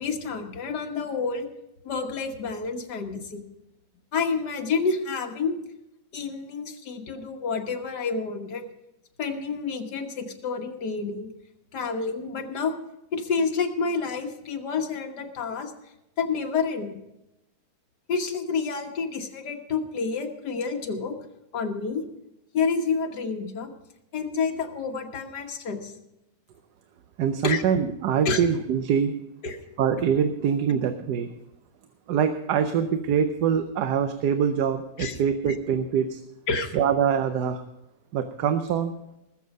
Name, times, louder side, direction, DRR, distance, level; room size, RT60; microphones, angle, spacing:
voice 1, 0.0-1.5 1.8-3.4 4.1-5.6 6.1-8.7 9.2-11.3 11.7-12.8 13.1-15.7 16.2-16.9 18.1-21.2 21.5-22.1 22.5-23.7 24.1-25.9 27.4-27.6 28.3-28.4 29.4-29.6 35.0-35.2 35.4-35.5 36.5-36.7, left 5 dB, 80° left, 4 dB, 1.9 m, -29 dB
voice 2, 27.2-29.1 29.8-31.3 32.1-36.2 36.7-37.6 38.1-38.9, right 7 dB, 80° right, 9 dB, 1.3 m, -24 dB
20.0 x 7.2 x 5.3 m, 0.89 s
omnidirectional pair, 1.8 m